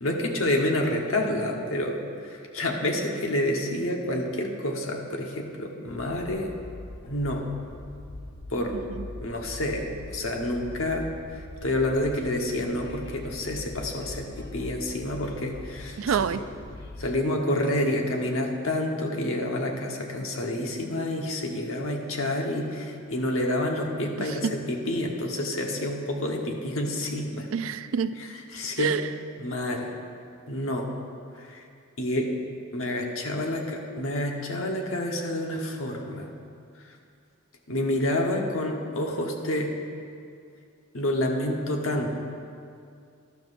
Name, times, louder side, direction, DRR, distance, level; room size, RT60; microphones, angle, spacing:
voice 1, 0.0-2.0 2.2-6.5 7.1-7.4 8.5-8.7 9.2-11.0 11.3-16.4 17.0-27.5 28.2-29.0 29.4-29.9 30.5-30.9 31.4-31.6 32.0-32.3 32.7-36.3 37.7-39.7 40.9-42.2, left 1 dB, 80° left, 1 dB, 1.2 m, -28 dB
Train, 5.9-17.1, left 2 dB, 55° left, 0.9 m, -42 dB
voice 2, 16.0-16.4 24.4-24.6 27.5-28.2 28.8-29.0, right 6 dB, 75° right, 13 dB, 0.4 m, -26 dB
12.0 x 11.5 x 2.6 m, 2.4 s
head